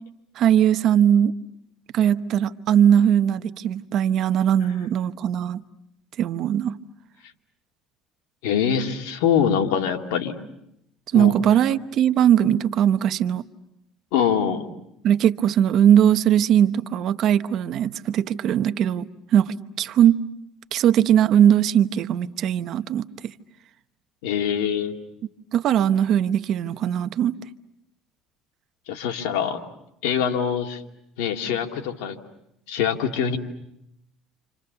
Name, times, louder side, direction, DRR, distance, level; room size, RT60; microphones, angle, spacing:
voice 1, 0.4-1.3 1.9-5.6 6.2-6.7 11.1-13.4 15.0-20.2 20.7-23.1 25.5-27.3, right 9 dB, 55° right, 0.9 m, -20 dB
voice 2, 8.4-10.4 11.1-11.3 14.1-14.6 24.2-24.9 28.9-29.6 30.0-30.8 31.2-32.2 32.7-33.4, left 8 dB, 90° left, 2.4 m, -24 dB
29.5 x 27.0 x 6.9 m
cardioid pair, 115°, 0 cm